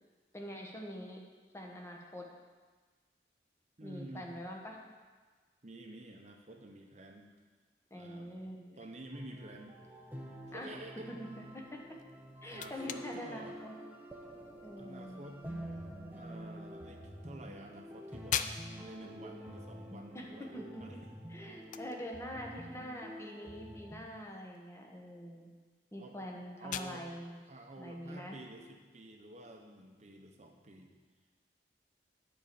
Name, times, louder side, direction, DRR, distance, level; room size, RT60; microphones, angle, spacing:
voice 1, 0.3-1.2 1.5-2.3 3.8-4.8 7.9-8.8 10.5-10.7 11.1-11.8 12.4-13.7 14.6-15.3 20.1-20.3 20.5-21.0 21.3-25.5 25.9-27.4 27.8-28.4, equal, 15° left, 0 dB, 1.1 m, -44 dB
voice 2, 3.8-4.3 5.6-7.3 7.9-8.5 8.8-9.8 10.5-11.1 12.5-13.6 14.8-15.4 16.1-20.5 20.8-21.1 26.0-26.2 26.6-27.1 27.5-30.9, right 1 dB, 40° right, 3 dB, 0.9 m, -50 dB
sound 1, 9.1-24.0, equal, 10° right, 0.8 m, -48 dB
sound 2, 12.0-29.6, left 9 dB, 45° left, 0.3 m, -46 dB
10.0 x 4.5 x 6.9 m, 1.4 s
head